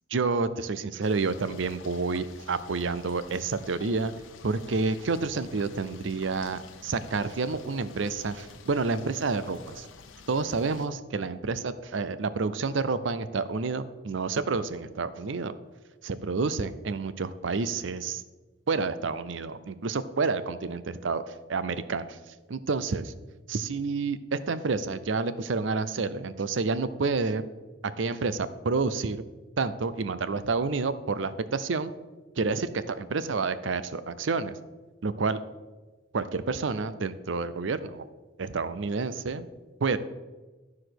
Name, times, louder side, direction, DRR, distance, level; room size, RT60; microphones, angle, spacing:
voice 1, 0.1-4.1 4.4-9.8 10.3-15.5 16.0-18.2 18.7-21.2 21.5-22.2 22.5-23.1 23.5-27.4 27.8-29.2 29.6-31.9 32.4-34.5 35.0-35.4 36.1-38.0 38.4-39.5 39.8-40.0, right 4 dB, 75° right, 14 dB, 0.6 m, -29 dB
sound 1, 1.0-10.9, left 4 dB, 90° left, 0.9 m, -50 dB
12.0 x 4.9 x 6.0 m, 1.2 s
head